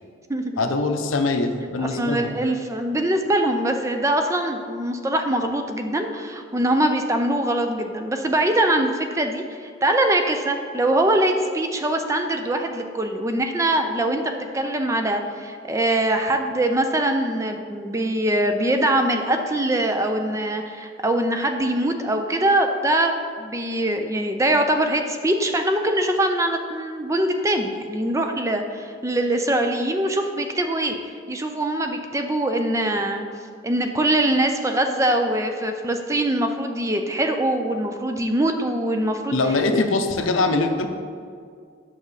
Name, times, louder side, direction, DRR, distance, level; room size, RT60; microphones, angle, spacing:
voice 1, 0.6-2.3 39.3-40.9, left 3 dB, 85° left, 6 dB, 0.6 m, -22 dB
voice 2, 2.0-31.0 31.3-33.3 33.6-39.4 39.7-39.8, right 1 dB, 15° right, 5 dB, 0.4 m, -23 dB
8.9 x 6.1 x 3.2 m, 2.1 s
head